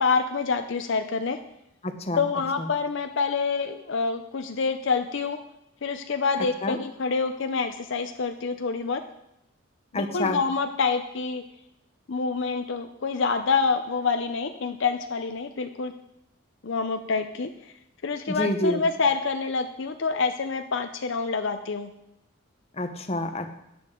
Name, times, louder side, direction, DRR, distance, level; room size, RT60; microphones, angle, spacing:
voice 1, 0.0-1.4 2.2-5.4 5.8-9.0 9.9-11.4 12.1-15.9 16.6-17.5 18.0-21.9, left 4 dB, 60° left, 8 dB, 0.6 m, -27 dB
voice 2, 1.8-2.2 2.6-2.7 6.6-6.8 9.9-10.4 18.3-18.8 22.8-23.5, left 1 dB, 30° left, 7 dB, 0.8 m, -28 dB
13.0 x 9.5 x 3.7 m, 0.84 s
head